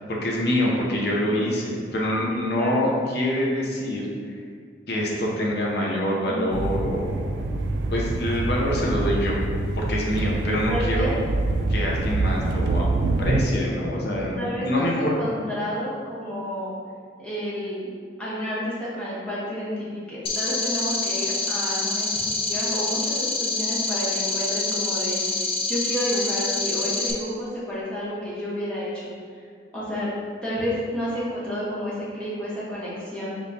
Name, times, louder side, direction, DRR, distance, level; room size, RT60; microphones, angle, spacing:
voice 1, 0.1-4.0 4.9-7.3 7.9-9.4 9.8-11.1 11.7-12.9 13.2-15.1, left 1 dB, 60° left, -3 dB, 0.7 m, -25 dB
voice 2, 2.3-2.8 6.3-6.6 10.7-11.2 14.4-16.7 17.2-17.9 18.2-29.1 29.7-30.1 30.4-33.5, equal, 5° left, -9 dB, 1.0 m, -30 dB
sound 1, 6.5-13.5, right 2 dB, 75° right, 0.3 m, -25 dB
sound 2, 20.3-27.1, left 3 dB, 30° left, 0.4 m, -26 dB
5.1 x 3.1 x 2.8 m, 2.1 s
head